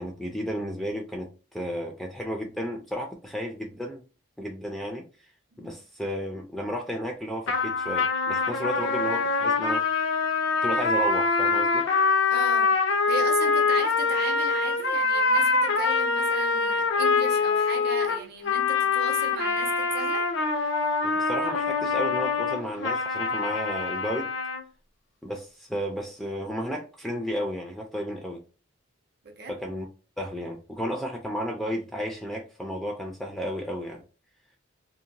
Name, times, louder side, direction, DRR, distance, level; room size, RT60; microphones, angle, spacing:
voice 1, 0.0-4.0 4.4-5.0 5.6-9.8 10.6-11.9 21.0-24.3 25.2-28.4 29.5-29.9 30.2-34.0, equal, ahead, 0.4 m, -33 dB
sound 1, 7.5-24.6, left 4 dB, 60° left, 0.5 m, -24 dB
voice 2, 12.3-12.8 13.1-20.3 29.2-29.6, right 4 dB, 50° right, 0.6 m, -37 dB
2.7 x 2.1 x 2.8 m
head